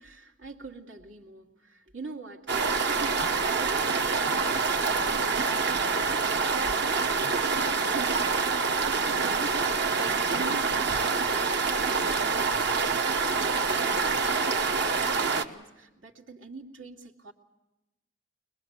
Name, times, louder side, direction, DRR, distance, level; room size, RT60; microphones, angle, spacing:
voice 1, 0.0-7.5 7.8-13.4 13.7-17.3, right 3 dB, 85° right, 3 dB, 2.3 m, -44 dB
sound 1, 2.5-15.4, right 4 dB, 60° right, 1.2 m, -26 dB
22.5 x 22.0 x 8.0 m, 0.98 s
head